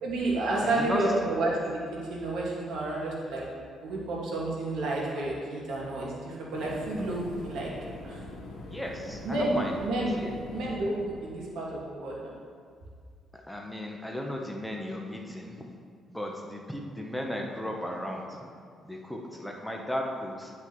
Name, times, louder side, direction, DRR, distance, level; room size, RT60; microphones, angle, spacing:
voice 1, 0.0-1.8 2.1-3.4 3.8-7.7 8.0-8.2 9.2-10.1 10.5-11.0 11.2-12.3, right 2 dB, 80° right, -4 dB, 1.9 m, -30 dB
voice 2, 0.6-1.0 8.7-9.7 10.2-10.3 13.3-15.7 16.1-18.5 18.8-20.5, left 1 dB, ahead, 0 dB, 0.9 m, -35 dB
sound 1, 6.5-11.6, left 1 dB, 90° left, 1.3 m, -43 dB
10.0 x 5.8 x 3.1 m, 2.1 s
cardioid pair, 90°, 0 cm